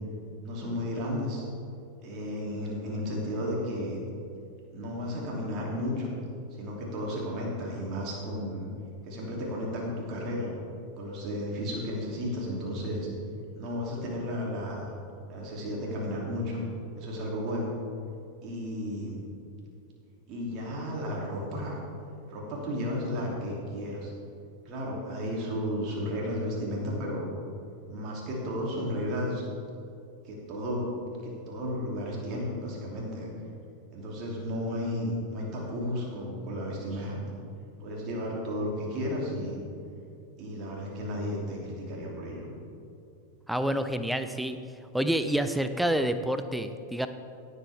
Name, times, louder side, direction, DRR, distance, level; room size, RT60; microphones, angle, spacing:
voice 1, 0.4-1.4 2.0-4.0 4.7-6.1 6.5-8.7 9.0-10.5 11.0-13.1 13.5-14.9 15.3-16.6 17.0-17.7 18.4-19.2 20.3-21.8 22.3-24.1 24.6-27.3 27.9-29.4 30.2-30.9 31.2-33.3 33.9-37.2 37.8-39.6 40.4-42.5, equal, 35° right, -3 dB, 3.0 m, -33 dB
voice 2, 43.5-44.6 44.9-47.1, right 1 dB, ahead, 10 dB, 0.6 m, -28 dB
17.5 x 8.2 x 3.6 m, 2.6 s
figure-of-eight pair, 90°, 0 cm